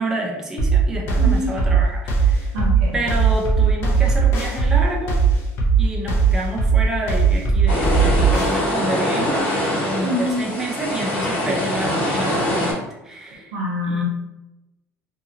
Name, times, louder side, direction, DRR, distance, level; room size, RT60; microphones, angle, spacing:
voice 1, 0.0-2.5 2.9-5.2 5.8-9.5 9.8-13.5 13.9-14.0, right 2 dB, 10° right, -1 dB, 0.4 m, -28 dB
sound 1, 0.6-8.6, right 5 dB, 50° left, 0.6 m, -18 dB
voice 2, 1.2-1.5 2.5-3.0 10.0-10.4 13.5-14.0, left 1 dB, 85° right, -3 dB, 0.8 m, -25 dB
sound 2, 7.7-12.7, left 1 dB, 25° left, 1.2 m, -23 dB
2.7 x 2.5 x 2.7 m, 0.94 s
cardioid pair, 170°, 6 cm